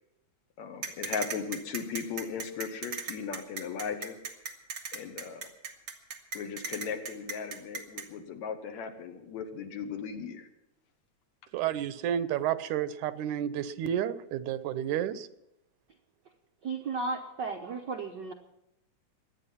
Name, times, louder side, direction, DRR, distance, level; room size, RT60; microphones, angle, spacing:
voice 1, 0.6-4.2 4.9-5.5 6.3-10.5, left 6 dB, 75° left, 6 dB, 2.5 m, -37 dB
sound 1, 0.8-8.0, right 5 dB, 45° right, 2.1 m, -37 dB
voice 2, 11.5-15.3, right 10 dB, 90° right, 14 dB, 2.2 m, -31 dB
voice 3, 16.6-18.3, right 4 dB, 70° right, 4 dB, 1.0 m, -34 dB
23.0 x 9.3 x 5.7 m, 0.86 s
omnidirectional pair, 3.3 m